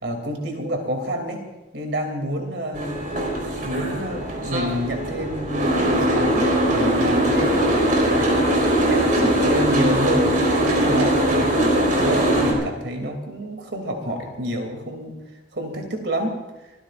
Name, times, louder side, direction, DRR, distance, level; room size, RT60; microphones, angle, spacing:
voice 1, 0.0-1.4 1.7-3.0 3.6-7.6 8.0-8.4 8.7-15.2 15.5-16.4, equal, 75° right, 4 dB, 2.9 m, -28 dB
Boat Water vehicle, 2.7-12.5, right 1 dB, 50° right, 4.3 m, -21 dB
26.5 x 16.0 x 2.5 m, 1.1 s
head